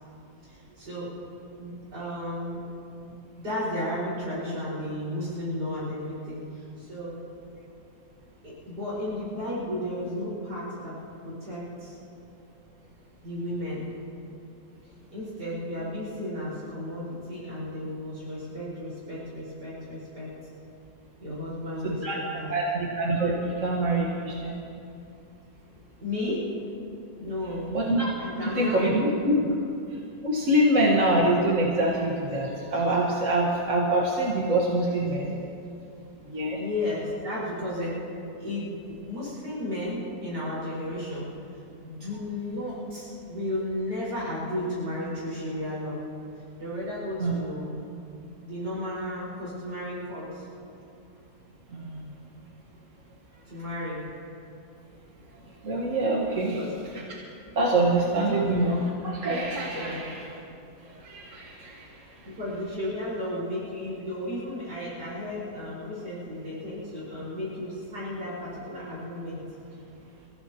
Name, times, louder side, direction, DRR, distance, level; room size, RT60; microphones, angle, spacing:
voice 1, 0.4-1.1 1.6-2.6 3.0-7.2 8.4-10.9 11.2-12.0 13.2-13.9 15.1-20.3 21.2-22.5 26.0-26.5 27.2-27.7 28.2-28.9 29.3-29.5 36.5-38.1 38.4-41.3 41.8-46.0 46.6-47.8 48.4-50.4 53.5-54.0 56.4-56.7 58.1-58.4 59.7-60.1 62.2-69.4, left 1 dB, 75° right, -9 dB, 5.8 m, -33 dB
voice 2, 21.8-22.2 22.5-24.6 27.7-28.1 28.5-29.4 30.2-35.3 36.3-36.6 47.2-47.3 51.7-52.1 55.6-56.6 57.1-57.2 57.6-60.2 61.0-61.9, right 1 dB, 50° right, -4 dB, 1.9 m, -25 dB
29.5 x 15.5 x 3.0 m, 2.7 s
omnidirectional pair, 1.8 m